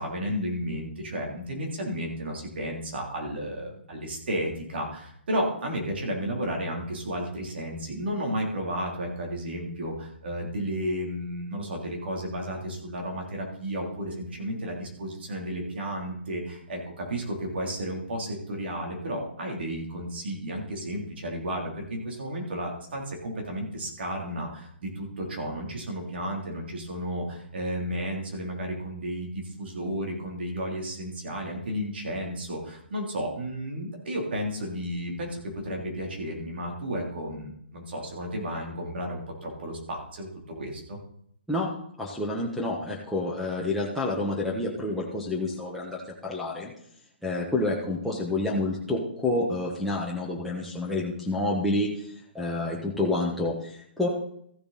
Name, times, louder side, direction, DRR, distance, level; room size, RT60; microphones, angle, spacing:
voice 1, 0.0-41.0, equal, 65° right, 0 dB, 3.3 m, -33 dB
voice 2, 42.0-46.7 47.2-52.1 52.3-54.1, left 2 dB, ahead, -6 dB, 1.2 m, -28 dB
14.5 x 6.7 x 4.2 m, 0.68 s
hypercardioid pair, 150°, 6 cm